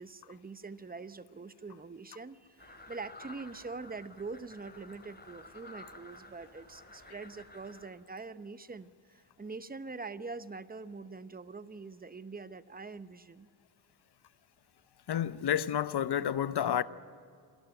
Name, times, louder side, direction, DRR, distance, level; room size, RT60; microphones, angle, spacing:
voice 1, 0.0-13.5, right 4 dB, 20° right, 0.9 m, -44 dB
sound 1, 2.6-7.9, left 2 dB, 20° left, 3.4 m, -52 dB
voice 2, 15.1-16.8, left 9 dB, 50° left, 0.9 m, -30 dB
28.0 x 11.5 x 9.1 m
cardioid pair, 65°, 50 cm